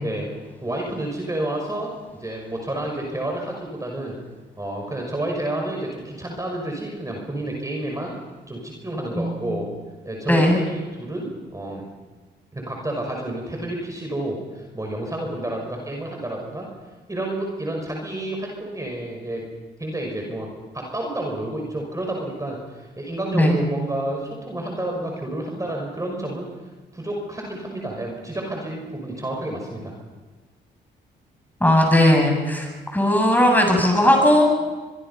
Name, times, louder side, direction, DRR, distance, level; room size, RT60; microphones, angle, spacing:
voice 1, 0.6-4.2 4.6-8.1 8.5-9.7 10.0-11.8 12.5-16.7 17.1-19.5 19.8-20.5 20.7-26.5 26.9-29.9, right 1 dB, 15° right, 0 dB, 5.9 m, -30 dB
voice 2, 9.1-9.5 10.3-10.6 23.3-23.6 31.6-34.5, left 1 dB, 10° left, 2 dB, 7.9 m, -17 dB
25.0 x 22.5 x 5.7 m, 1.3 s
cardioid pair, 80°, 19 cm